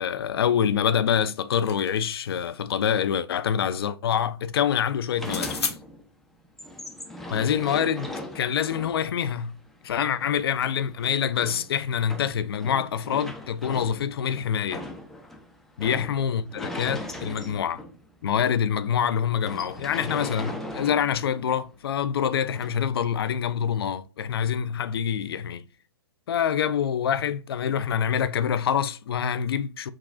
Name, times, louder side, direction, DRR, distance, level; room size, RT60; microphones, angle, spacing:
voice 1, 0.0-5.6 7.3-9.6 9.8-14.8 15.8-17.8 18.2-25.6 26.3-29.9, left 8 dB, 65° left, 0.4 m, -26 dB
sound 1, 1.2-2.5 5.2-5.8, left 5 dB, 80° left, 0.8 m, -34 dB
sound 2, 5.1-6.1 6.4-18.1 18.5-18.6 18.8-19.0 19.4-21.6 22.5-22.8, left 1 dB, ahead, 0.4 m, -39 dB
6.1 x 2.3 x 2.3 m
hypercardioid pair, 120°, 14 cm